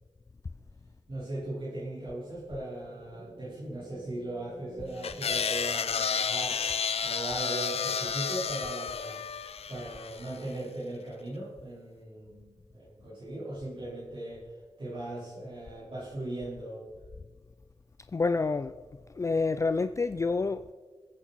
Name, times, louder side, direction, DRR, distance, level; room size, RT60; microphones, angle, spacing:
voice 1, 1.1-9.2 9.7-16.8, right 1 dB, 55° right, 3.7 m, -38 dB
sound 1, 2.8-6.5, right 1 dB, 35° right, 4.8 m, -52 dB
sound 2, 5.0-10.4, left 6 dB, 80° left, 0.7 m, -31 dB
voice 2, 18.1-18.7 19.2-20.7, left 4 dB, 30° left, 0.4 m, -28 dB
21.5 x 8.6 x 4.1 m
wide cardioid pair, 115°, 10 cm